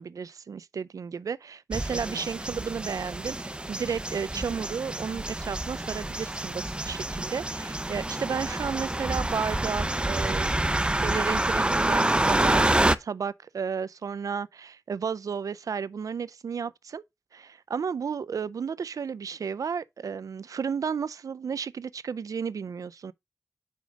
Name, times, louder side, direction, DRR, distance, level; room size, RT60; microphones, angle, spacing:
voice 1, 0.0-17.0 17.3-23.1, right 6 dB, 80° right, 0.4 m, -33 dB
sound 1, 1.7-12.9, right 1 dB, 15° right, 0.5 m, -27 dB
5.1 x 5.1 x 4.9 m
wide cardioid pair, 60°, 6 cm